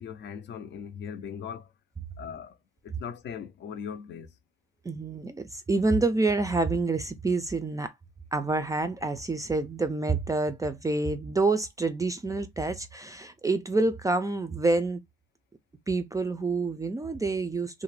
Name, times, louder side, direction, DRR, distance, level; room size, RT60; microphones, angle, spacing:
voice 1, 0.0-1.7 2.2-2.6 2.8-4.3, left 7 dB, 65° left, 0.5 m, -39 dB
voice 2, 4.8-7.9 8.3-15.0 15.9-17.8, right 3 dB, 15° right, 0.3 m, -27 dB
2.4 x 2.1 x 3.1 m
cardioid pair, 90°, 20 cm